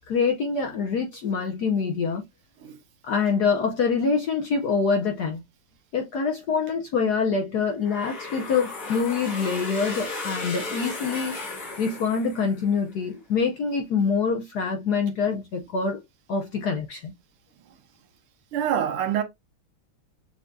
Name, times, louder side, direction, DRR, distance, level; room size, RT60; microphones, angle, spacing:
voice 1, 0.1-2.2 3.0-5.4 5.9-11.3 11.8-16.0 16.3-17.1, left 5 dB, 70° left, 1.0 m, -25 dB
sound 1, 7.8-12.8, left 3 dB, 85° left, 3.2 m, -35 dB
voice 2, 18.5-19.2, right 9 dB, 80° right, 1.7 m, -25 dB
6.8 x 2.6 x 2.2 m
omnidirectional pair, 2.4 m